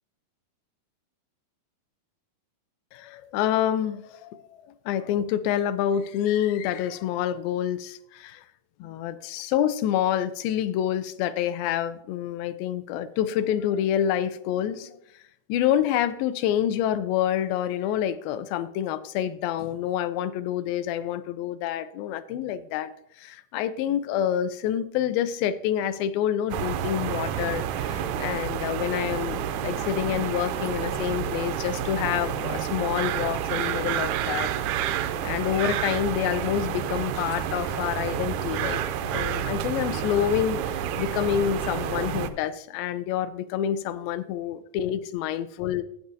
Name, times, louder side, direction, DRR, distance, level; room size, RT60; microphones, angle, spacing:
voice 1, 2.9-8.5 8.8-15.0 15.5-22.9 23.2-34.5 34.8-45.8, left 10 dB, 85° left, 2.4 m, -27 dB
sound 1, 26.5-42.3, right 9 dB, 85° right, 1.7 m, -29 dB
12.5 x 8.6 x 2.7 m
omnidirectional pair, 4.1 m